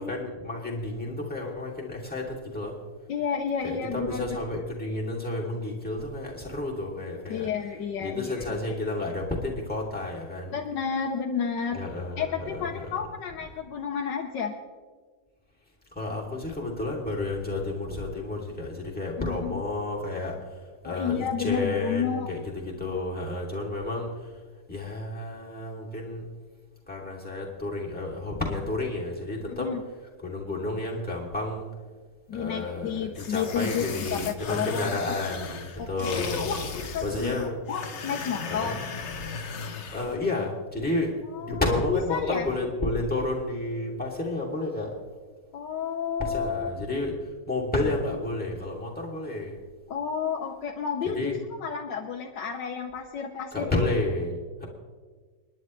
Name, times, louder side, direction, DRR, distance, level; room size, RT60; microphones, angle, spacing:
voice 1, 0.0-2.7 3.6-7.5 8.0-10.5 11.7-12.8 15.9-24.3 24.7-26.3 26.9-29.7 30.2-31.7 32.3-36.6 37.0-37.6 38.5-38.8 39.9-44.9 46.2-49.6 51.0-51.4 53.5-54.7, left 2 dB, 5° left, -4 dB, 2.7 m, -31 dB
voice 2, 3.1-4.2 7.3-8.6 10.5-11.8 12.2-14.5 19.2-19.6 20.8-22.3 29.5-29.8 32.3-35.0 35.8-38.8 41.3-42.5 45.5-46.7 49.9-51.3 51.6-53.7, left 7 dB, 80° left, 1 dB, 1.5 m, -31 dB
sound 1, 33.1-40.2, left 5 dB, 45° left, 1.1 m, -36 dB
29.5 x 10.5 x 3.2 m, 1.5 s
omnidirectional pair, 1.9 m